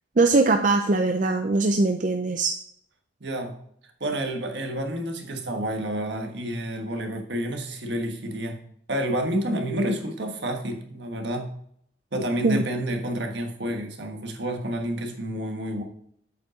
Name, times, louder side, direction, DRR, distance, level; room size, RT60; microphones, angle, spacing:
voice 1, 0.2-2.5 12.4-12.6, right 3 dB, 40° right, 5 dB, 0.5 m, -21 dB
voice 2, 3.2-3.5 4.0-8.6 8.9-11.5 12.1-15.8, right 1 dB, 65° right, 3 dB, 1.4 m, -29 dB
8.2 x 5.3 x 5.0 m, 0.67 s
head